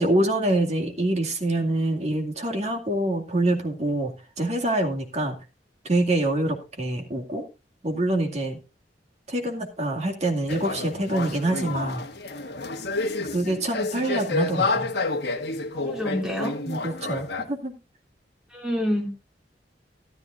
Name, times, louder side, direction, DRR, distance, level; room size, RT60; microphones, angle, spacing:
voice 1, 0.0-5.4 5.8-7.4 7.8-8.6 9.3-12.0 13.3-14.9 16.6-17.8, right 1 dB, 40° right, 2.2 m, -25 dB
sound 1, 10.5-17.4, left 3 dB, 65° left, 1.4 m, -29 dB
voice 2, 15.7-16.6 18.5-19.1, equal, 5° right, 3.7 m, -27 dB
13.5 x 12.5 x 2.5 m
head